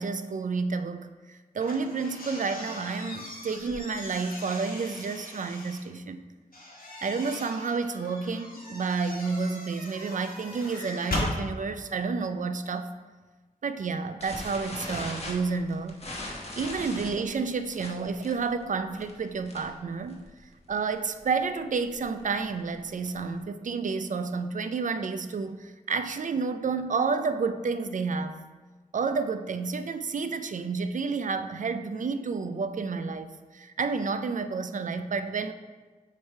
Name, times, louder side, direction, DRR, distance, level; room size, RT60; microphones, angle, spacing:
voice 1, 0.0-6.2 7.0-12.9 13.6-15.9 16.6-20.3 20.7-28.4 28.9-35.5, right 4 dB, 60° right, 10 dB, 0.4 m, -30 dB
sound 1, 1.6-5.8 6.5-11.3, left 2 dB, 75° left, 1.4 m, -38 dB
sound 2, 14.2-19.8 20.1-20.4 20.6-20.7 21.0-21.3 21.8-23.3, left 1 dB, 45° left, 1.2 m, -39 dB
7.1 x 3.4 x 4.6 m, 1.3 s
wide cardioid pair, 85°, 15 cm